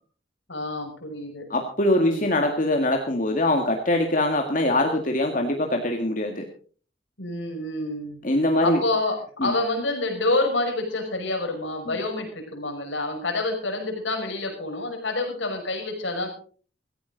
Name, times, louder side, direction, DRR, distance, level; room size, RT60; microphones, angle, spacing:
voice 1, 0.5-1.5 1.9-2.2 7.2-8.2 8.6-16.3, left 2 dB, 80° left, 3 dB, 6.2 m, -28 dB
voice 2, 1.5-6.4 8.2-8.8 9.4-9.5, left 1 dB, 45° left, 3 dB, 1.9 m, -23 dB
17.0 x 15.5 x 4.0 m, 0.42 s
head